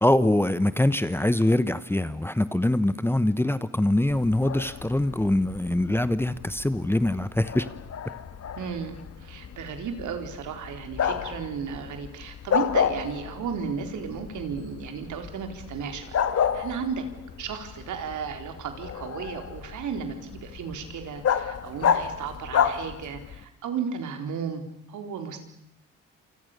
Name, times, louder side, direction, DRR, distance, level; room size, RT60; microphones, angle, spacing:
voice 1, 0.0-7.7, left 1 dB, 10° left, 14 dB, 1.0 m, -23 dB
Bark, 4.1-23.4, left 8 dB, 55° left, 1.8 m, -31 dB
voice 2, 8.6-17.1 17.4-24.6 24.9-25.4, right 6 dB, 75° right, 6 dB, 4.1 m, -34 dB
28.0 x 25.5 x 6.8 m, 0.78 s
cardioid pair, 90°, 30 cm